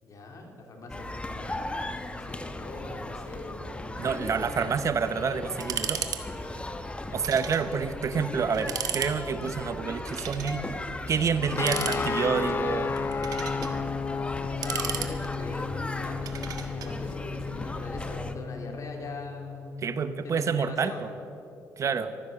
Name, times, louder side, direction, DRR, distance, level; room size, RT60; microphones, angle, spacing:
voice 1, 0.0-4.5 7.1-7.2 14.5-19.7 20.2-21.0 21.8-22.1, left 2 dB, 55° left, 2 dB, 3.1 m, -42 dB
sound 1, 0.9-18.3, left 1 dB, 15° left, 1.1 m, -37 dB
voice 2, 4.0-6.1 7.1-10.6 11.1-12.9 19.8-21.1 21.8-22.1, right 6 dB, 50° right, 13 dB, 0.8 m, -28 dB
sound 2, 5.6-6.2 6.5-6.6 7.2-7.7 8.0-8.1 8.5-9.1 10.1-10.6 11.5-12.4 13.0-13.7 14.4-15.5 16.3-16.9, right 8 dB, 65° right, 1.4 m, -34 dB
sound 3, 11.6-20.5, left 5 dB, 35° left, 0.4 m, -33 dB
15.0 x 13.0 x 6.9 m, 2.7 s
cardioid pair, 75°, 7 cm